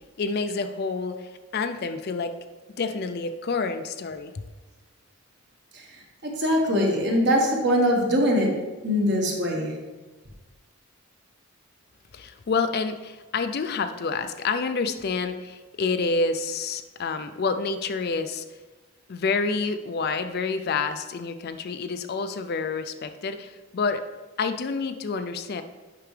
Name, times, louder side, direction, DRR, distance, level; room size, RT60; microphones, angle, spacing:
voice 1, 0.2-2.3 2.8-4.4 12.1-18.4 19.1-24.0 24.4-25.6, left 4 dB, 45° left, 9 dB, 0.4 m, -28 dB
voice 2, 5.7-8.5 8.8-9.7, equal, 50° right, 0 dB, 1.5 m, -23 dB
9.1 x 5.9 x 3.3 m, 1.2 s
head